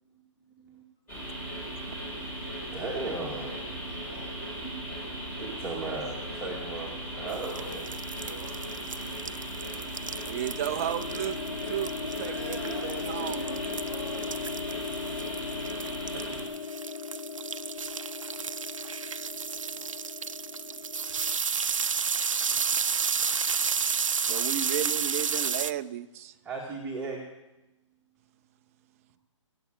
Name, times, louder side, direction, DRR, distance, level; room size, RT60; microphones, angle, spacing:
sound 1, 1.1-16.4, right 1 dB, 10° left, 4.2 m, -38 dB
voice 1, 1.1-4.2 4.6-5.1 5.4-7.9 26.4-27.2, right 3 dB, 5° right, -5 dB, 2.2 m, -38 dB
voice 2, 3.0-5.2 5.7-6.2 7.1-7.8 8.1-9.5 9.9-10.3 12.2-14.4 19.5-20.0 20.6-20.9 21.3-22.0 23.1-23.9, equal, 45° left, -6 dB, 7.2 m, -48 dB
sound 2, 7.3-25.7, right 6 dB, 80° right, 0.6 m, -32 dB
sound 3, 9.5-21.4, left 6 dB, 90° left, 0.5 m, -39 dB
voice 3, 10.3-13.4 16.1-16.6 24.3-26.3, right 12 dB, 30° right, 12 dB, 0.6 m, -34 dB
18.0 x 7.9 x 9.1 m, 0.97 s
hypercardioid pair, 145°, 16 cm